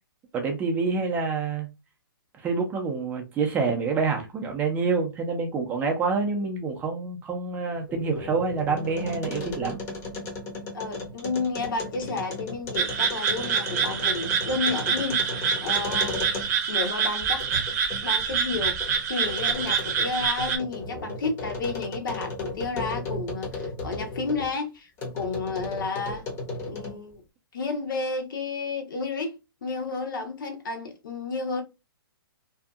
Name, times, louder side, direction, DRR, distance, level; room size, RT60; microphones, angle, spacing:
voice 1, 0.3-1.7 2.4-9.8, right 4 dB, 15° right, 0.5 m, -27 dB
sound 1, 7.8-16.7 17.2-24.5 25.0-27.1, left 2 dB, 20° left, 0.8 m, -36 dB
voice 2, 10.7-16.2 16.7-17.4 18.0-18.8 19.1-24.9 25.1-26.2 26.7-27.2 27.5-31.6, left 3 dB, 60° left, 0.9 m, -31 dB
sound 2, 12.8-20.6, right 6 dB, 45° right, 0.8 m, -26 dB
2.7 x 2.4 x 2.3 m
hypercardioid pair, 145°, 12 cm